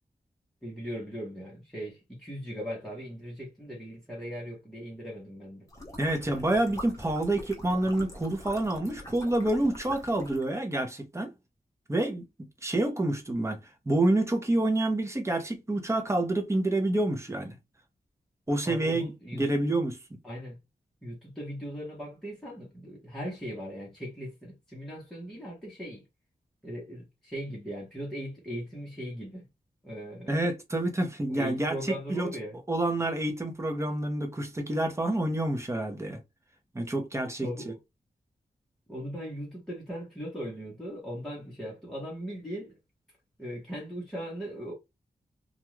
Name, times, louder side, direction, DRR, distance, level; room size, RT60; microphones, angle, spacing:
voice 1, 0.6-5.7 18.6-19.5 20.2-20.6 21.0-26.0 26.6-29.5 29.8-30.3 31.3-32.6 37.4-37.8 38.9-42.7 43.4-44.7, equal, 5° left, 1.0 m, -39 dB
sound 1, 5.7-10.5, left 1 dB, 20° left, 1.0 m, -44 dB
voice 2, 6.0-11.3 11.9-12.2 12.6-13.6 13.9-17.6 18.5-20.0 30.3-32.3 32.7-36.2 36.7-37.7, right 1 dB, 15° right, 0.7 m, -28 dB
2.5 x 2.3 x 3.0 m
wide cardioid pair, 130°, 17 cm